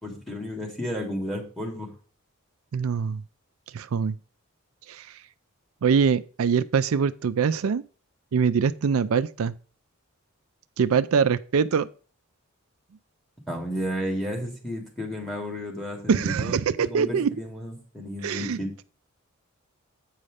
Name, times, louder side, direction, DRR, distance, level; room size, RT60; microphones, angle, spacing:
voice 1, 0.0-1.9 13.5-18.7, equal, ahead, 2.5 m, -32 dB
voice 2, 2.7-3.2 3.7-4.2 4.9-5.2 5.8-7.8 8.3-9.5 10.8-11.9 16.1-17.3 18.2-18.6, right 6 dB, 75° right, 0.4 m, -23 dB
8.6 x 5.4 x 4.9 m
head